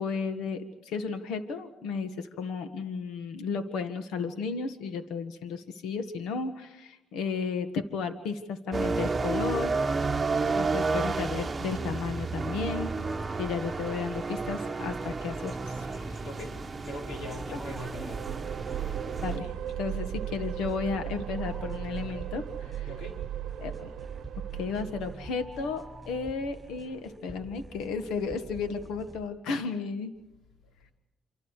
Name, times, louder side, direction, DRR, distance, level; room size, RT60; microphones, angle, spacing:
voice 1, 0.0-9.8 10.5-12.9 13.4-16.2 17.5-17.6 18.8-18.9 19.2-19.5 19.8-22.9 23.6-23.9 24.5-30.1, left 5 dB, 90° left, 9 dB, 1.7 m, -33 dB
sound 1, 8.7-19.4, right 4 dB, 25° right, 1.3 m, -31 dB
sound 2, 15.0-29.3, right 1 dB, 5° right, 6.8 m, -47 dB
voice 2, 16.2-16.6 16.8-18.2 22.8-23.2, left 1 dB, 70° left, 2 dB, 5.0 m, -41 dB
sound 3, 17.8-25.6, right 11 dB, 75° right, 0.8 m, -37 dB
28.5 x 26.5 x 4.9 m, 0.97 s
cardioid pair, 90°, 0 cm